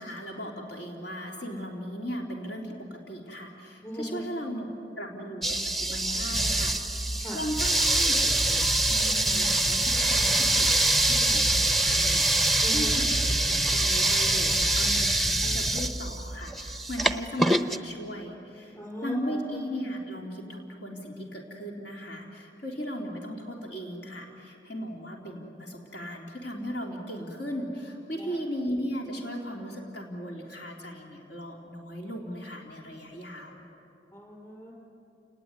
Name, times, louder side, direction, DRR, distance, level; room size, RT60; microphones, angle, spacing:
voice 1, 0.0-4.7 5.0-6.8 7.3-10.8 11.0-33.6, equal, 70° left, 0 dB, 3.5 m, -37 dB
voice 2, 3.8-4.2 7.2-7.4 12.6-12.9 18.8-19.2 34.1-34.7, equal, 15° left, -1 dB, 5.2 m, -38 dB
sound 1, 5.4-17.8, right 1 dB, ahead, 0.7 m, -24 dB
29.0 x 19.5 x 9.7 m, 2.7 s
head